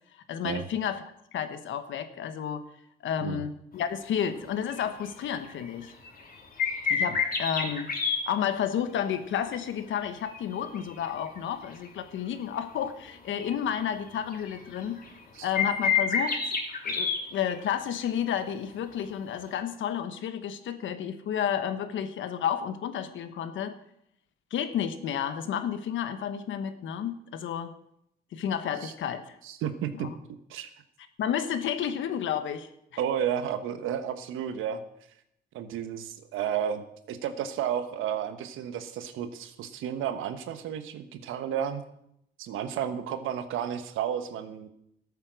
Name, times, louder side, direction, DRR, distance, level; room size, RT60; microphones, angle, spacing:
voice 1, 0.3-1.0 1.3-2.6 3.0-5.9 6.9-7.9 8.3-15.0 15.4-16.4 16.8-23.7 24.5-27.7 28.3-29.4 29.9-30.1 31.2-32.7, left 9 dB, 75° left, 10 dB, 1.3 m, -31 dB
sound 1, 4.7-5.1 5.4-8.2 10.3-11.4 11.8-11.9 13.4-13.5 14.1-15.2 15.5-17.7 18.1-18.2 19.6-19.7, left 6 dB, 45° left, 3.0 m, -28 dB
voice 2, 29.4-30.1 30.5-30.7 33.0-34.8 35.5-41.8 42.4-44.7, right 9 dB, 90° right, 10 dB, 1.2 m, -32 dB
13.5 x 8.6 x 6.4 m, 0.77 s
cardioid pair, 90°, 20 cm